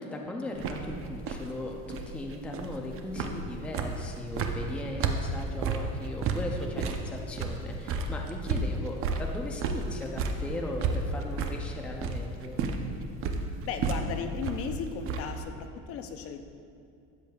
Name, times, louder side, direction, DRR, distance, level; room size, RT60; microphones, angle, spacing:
voice 1, 0.0-12.6, left 1 dB, 5° left, 1 dB, 0.5 m, -38 dB
sound 1, 0.6-15.4, right 4 dB, 45° right, 0.6 m, -33 dB
voice 2, 13.7-16.4, left 7 dB, 50° left, 7 dB, 0.6 m, -36 dB
13.0 x 8.9 x 2.3 m, 2.4 s
cardioid pair, 165°, 30 cm